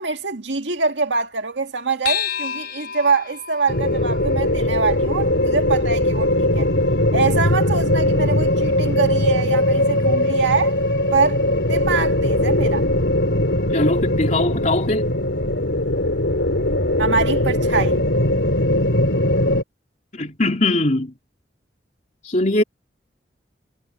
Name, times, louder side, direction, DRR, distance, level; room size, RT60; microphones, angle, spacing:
voice 1, 0.0-6.7 7.1-10.8 11.1-12.9 17.0-18.0, right 4 dB, 85° right, 1.9 m, -24 dB
sound 1, 2.0-6.8, left 9 dB, 60° left, 4.8 m, -32 dB
sound 2, 3.7-19.6, left 1 dB, 85° left, 3.6 m, -20 dB
voice 2, 13.7-15.1 20.1-21.1 22.2-22.6, left 2 dB, 40° left, 3.3 m, -21 dB
head